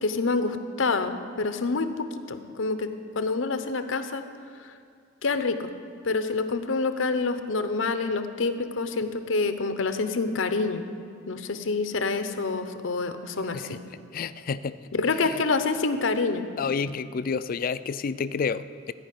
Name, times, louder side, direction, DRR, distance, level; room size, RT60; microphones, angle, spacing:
voice 1, 0.0-2.9 3.2-4.2 4.6-4.7 5.2-5.7 6.0-10.9 11.3-13.8 14.9-16.5, left 3 dB, 85° left, 9 dB, 0.8 m, -27 dB
voice 2, 14.1-14.8 15.1-15.4 16.6-18.9, left 5 dB, 45° left, 14 dB, 0.4 m, -30 dB
14.0 x 5.2 x 9.2 m, 2.3 s
head